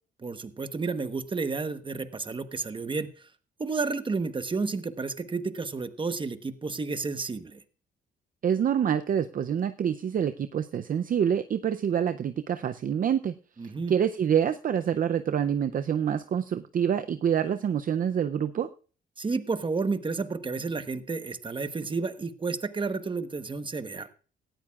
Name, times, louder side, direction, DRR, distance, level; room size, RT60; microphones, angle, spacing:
voice 1, 0.2-3.3 3.6-7.6 13.6-13.9 19.2-24.2, right 4 dB, 25° right, 10 dB, 1.1 m, -31 dB
voice 2, 8.4-13.3 13.9-18.7, right 8 dB, 45° right, 10 dB, 0.5 m, -26 dB
18.0 x 13.0 x 2.4 m, 0.40 s
cardioid pair, 90°, 20 cm